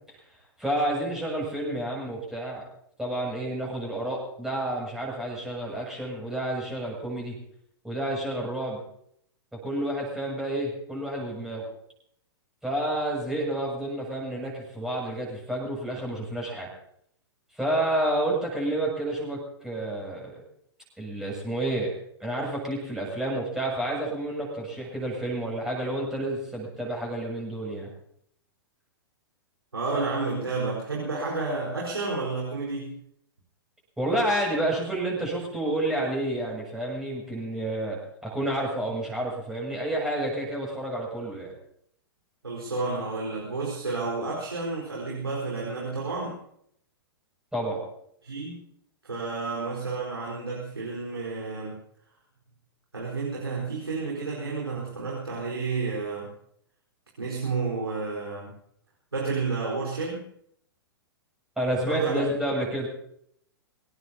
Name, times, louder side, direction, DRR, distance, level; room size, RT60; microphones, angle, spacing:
voice 1, 0.6-2.6 3.0-7.4 7.8-8.8 9.5-11.7 12.6-16.7 17.5-20.3 21.0-21.9 22.2-27.9 34.0-41.5 47.5-47.8 61.6-62.9, right 1 dB, 5° right, -4 dB, 6.9 m, -30 dB
voice 2, 29.7-33.0 42.4-46.4 48.2-48.6 49.0-51.8 52.9-56.3 57.2-58.5 59.1-60.2 61.9-62.3, right 3 dB, 75° right, -4 dB, 4.5 m, -31 dB
24.5 x 17.5 x 2.9 m, 0.70 s
figure-of-eight pair, 105°, 13 cm